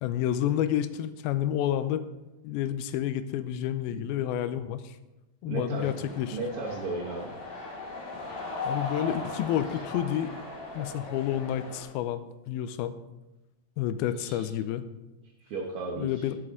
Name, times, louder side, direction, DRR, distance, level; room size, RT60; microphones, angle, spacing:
voice 1, 0.0-2.0 2.4-5.0 5.4-6.4 8.6-10.3 10.7-13.0 13.8-14.8 16.0-16.4, left 11 dB, 85° left, 11 dB, 2.5 m, -29 dB
voice 2, 5.5-6.0 6.3-7.3 14.0-14.5 15.4-16.3, right 3 dB, 80° right, 0 dB, 1.2 m, -35 dB
sound 1, 5.7-11.8, left 3 dB, 65° left, 6.2 m, -38 dB
19.0 x 7.9 x 3.7 m, 1.0 s
omnidirectional pair, 4.3 m